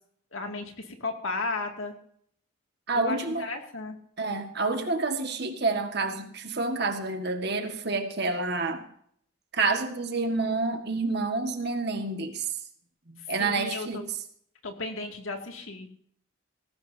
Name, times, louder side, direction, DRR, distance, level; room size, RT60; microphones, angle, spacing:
voice 1, 0.3-1.9 2.9-4.0 13.4-14.0 14.6-15.9, left 3 dB, 75° left, 3 dB, 2.3 m, -34 dB
voice 2, 2.9-3.5 4.2-8.8 9.5-12.6 13.1-14.1, right 3 dB, 50° right, 5 dB, 1.7 m, -28 dB
18.0 x 16.0 x 2.8 m, 0.65 s
head